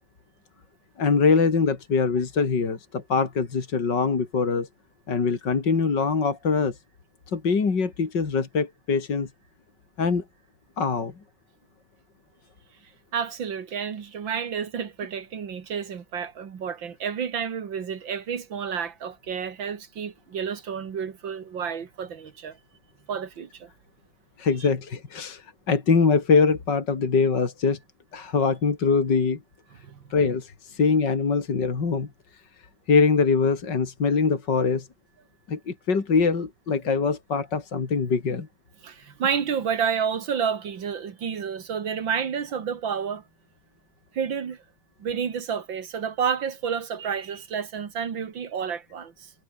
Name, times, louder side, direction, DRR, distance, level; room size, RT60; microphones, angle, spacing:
voice 1, 1.0-4.7 5.1-6.8 7.3-9.3 10.0-10.2 10.8-11.1 24.4-27.8 28.1-29.4 30.1-32.1 32.9-34.9 35.5-38.5, left 4 dB, 60° left, 3.5 m, -23 dB
voice 2, 13.1-22.6 23.1-23.7 24.6-24.7 29.8-30.0 38.8-43.2 44.1-44.6 45.0-49.3, right 7 dB, 75° right, 2.6 m, -30 dB
omnidirectional pair, 2.1 m